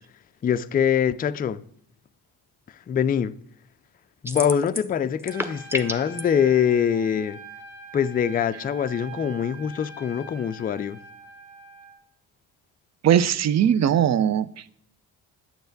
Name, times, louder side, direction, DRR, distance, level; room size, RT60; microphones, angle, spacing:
voice 1, 0.4-1.6 2.9-3.3 4.2-7.4 7.9-11.0, left 8 dB, 20° left, 0.3 m, -24 dB
sound 1, 4.3-4.9 5.2-6.2, equal, 5° right, 0.8 m, -29 dB
Trumpet, 5.3-12.0, right 4 dB, 65° right, 2.8 m, -43 dB
voice 2, 13.0-14.5, right 9 dB, 35° right, 0.5 m, -19 dB
9.3 x 6.8 x 3.9 m
hypercardioid pair, 50°, 50 cm